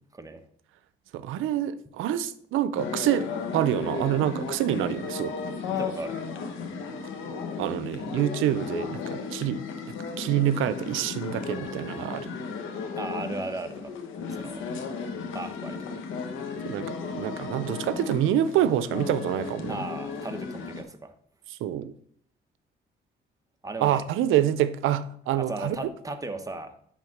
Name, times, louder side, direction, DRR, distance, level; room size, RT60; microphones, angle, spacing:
voice 1, 0.1-0.4 5.7-6.2 12.9-13.9 14.3-14.7 15.3-16.0 19.7-21.1 23.6-24.0 25.4-26.7, right 2 dB, 15° right, 6 dB, 1.1 m, -36 dB
voice 2, 1.1-3.3 3.5-5.3 7.6-9.6 10.2-12.4 16.7-19.8 21.5-21.9 23.8-25.8, right 11 dB, 90° right, 15 dB, 0.6 m, -26 dB
sound 1, 2.8-20.8, left 5 dB, 90° left, 1.3 m, -35 dB
10.5 x 3.7 x 6.6 m, 0.65 s
cardioid pair, 90°, 20 cm